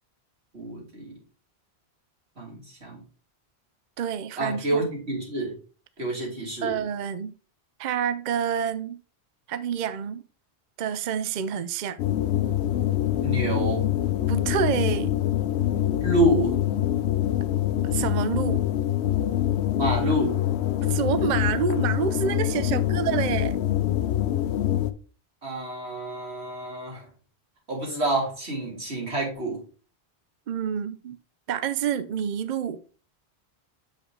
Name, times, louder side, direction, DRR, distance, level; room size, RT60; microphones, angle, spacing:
voice 1, 0.5-1.2 2.4-3.0 4.4-5.6 6.0-6.8 13.2-13.8 16.0-16.6 19.8-20.4 25.4-27.0 27.7-29.6, right 1 dB, 80° right, 3.2 m, -27 dB
voice 2, 4.0-4.8 6.6-7.3 7.8-9.0 9.5-10.2 10.8-12.0 14.3-15.1 17.8-18.7 20.9-23.6 30.5-31.2 31.5-32.8, right 8 dB, 55° right, 0.6 m, -28 dB
sound 1, 12.0-24.9, left 12 dB, 90° left, 0.9 m, -25 dB
7.6 x 5.3 x 3.8 m
omnidirectional pair, 1.1 m